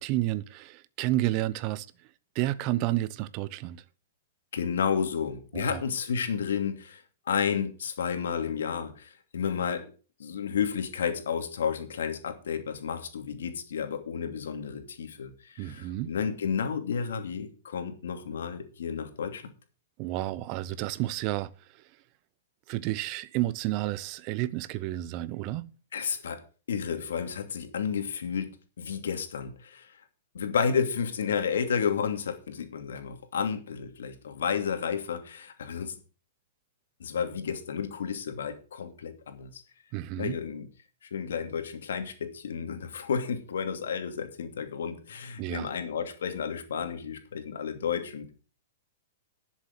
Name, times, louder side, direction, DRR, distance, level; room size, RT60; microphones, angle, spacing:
voice 1, 0.0-1.9 2.3-3.8 5.5-5.8 15.6-16.1 20.0-21.8 22.7-25.7 39.9-40.4 45.4-45.7, right 15 dB, 40° right, 0.8 m, -31 dB
voice 2, 4.5-9.9 10.2-19.4 25.9-26.4 26.7-30.0 30.3-35.9 37.0-39.6 40.2-40.7 41.0-48.3, left 7 dB, 85° left, 2.7 m, -31 dB
11.5 x 7.3 x 6.6 m
hypercardioid pair, 145°, 0 cm